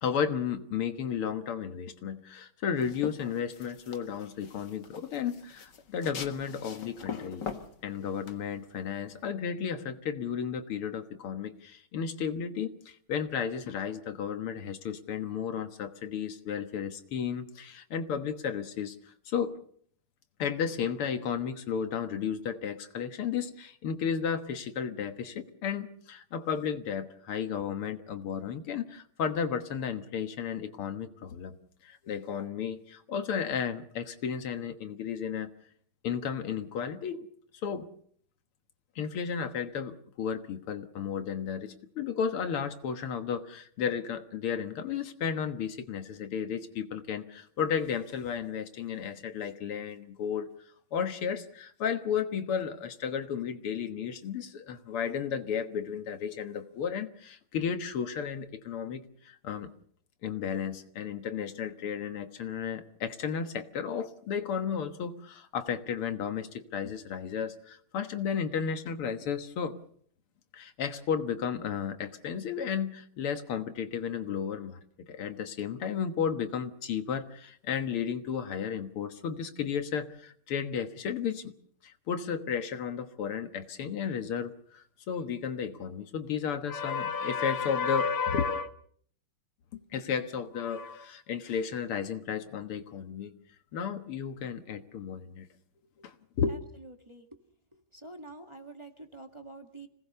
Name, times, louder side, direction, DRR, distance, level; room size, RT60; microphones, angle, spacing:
voice 1, 0.0-7.4 7.8-19.6 20.4-31.6 31.8-35.5 36.0-37.3 37.6-37.9 39.0-50.5 50.9-59.7 60.2-69.8 70.5-74.8 75.1-81.5 81.8-88.7 89.9-93.3 93.7-95.5 96.0-96.6, left 7 dB, 80° left, 8 dB, 2.3 m, -33 dB
sound 1, 2.8-9.3, left 7 dB, 55° left, 2.2 m, -43 dB
voice 2, 96.5-97.3 97.9-99.9, right 2 dB, 15° right, 4 dB, 1.9 m, -47 dB
26.5 x 19.0 x 6.9 m, 0.63 s
omnidirectional pair, 2.4 m